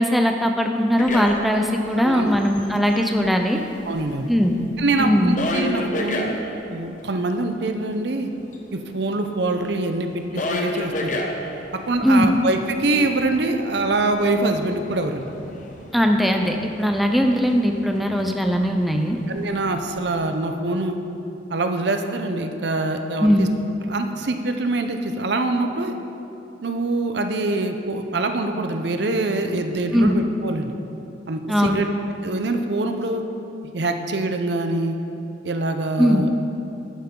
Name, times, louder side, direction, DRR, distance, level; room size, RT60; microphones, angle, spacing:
voice 1, 0.0-3.6 4.3-4.6 5.0-5.4 12.0-12.3 15.9-19.2 23.2-23.5 29.9-30.2 31.5-31.8 36.0-36.2, equal, ahead, 3 dB, 0.5 m, -19 dB
sound 1, 1.0-1.8 2.1-3.3 3.7-6.5 8.5-8.6 8.8-20.4, left 1 dB, 45° left, 0.9 m, -33 dB
voice 2, 3.9-4.3 4.8-8.3 8.7-11.2 11.9-15.3 19.3-21.0 21.5-23.5 23.9-25.9 26.6-30.7 31.3-31.9 32.2-33.2 33.7-35.0 35.4-36.3, right 2 dB, 65° right, 6 dB, 0.7 m, -24 dB
11.5 x 9.5 x 3.8 m, 2.8 s
head